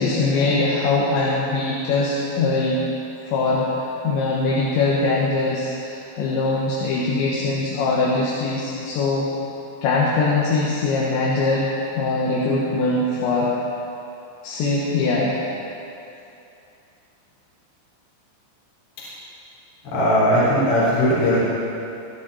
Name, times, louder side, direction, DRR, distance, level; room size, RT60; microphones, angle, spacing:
voice 1, 0.0-2.8 3.3-9.3 9.8-13.5 14.4-15.4, left 3 dB, 70° left, -5 dB, 3.4 m, -22 dB
voice 2, 19.8-21.4, equal, 50° left, -9 dB, 5.5 m, -18 dB
22.0 x 11.5 x 4.2 m, 2.8 s
omnidirectional pair, 5.9 m